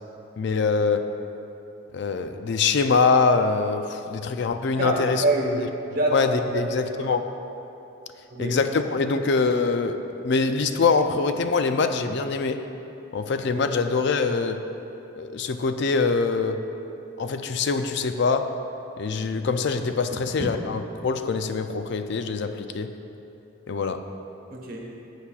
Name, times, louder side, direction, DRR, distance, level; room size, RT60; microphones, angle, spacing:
voice 1, 0.4-1.1 1.9-5.2 5.6-5.7 6.1-7.3 8.4-12.6 13.1-14.6 15.1-16.6 17.2-18.5 19.0-22.9 23.7-24.0, left 4 dB, 55° left, 8 dB, 0.4 m, -24 dB
voice 2, 4.8-6.1 6.5-7.1 8.3-8.6 20.1-20.5 24.5-24.9, right 1 dB, 45° right, -1 dB, 1.2 m, -27 dB
14.5 x 8.2 x 2.4 m, 2.9 s
head